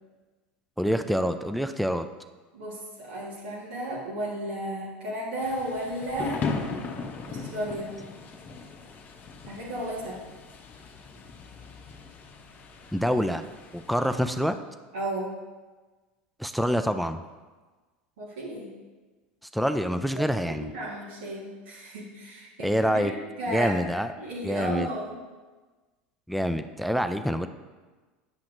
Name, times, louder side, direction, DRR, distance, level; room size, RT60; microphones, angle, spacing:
voice 1, 0.8-2.1 12.9-13.4 13.7-14.6 16.4-17.2 19.5-20.7 22.6-23.1 23.5-24.1 24.4-24.9 26.3-27.5, equal, ahead, 9 dB, 0.3 m, -26 dB
voice 2, 2.5-6.4 7.3-7.9 9.4-10.2 14.9-15.3 18.2-18.7 20.1-23.7 24.2-25.2, right 1 dB, 80° right, -6 dB, 1.7 m, -34 dB
Thunder / Rain, 5.4-14.4, left 4 dB, 35° left, 0.8 m, -38 dB
9.7 x 5.7 x 2.6 m, 1.3 s
hypercardioid pair, 95°, 5 cm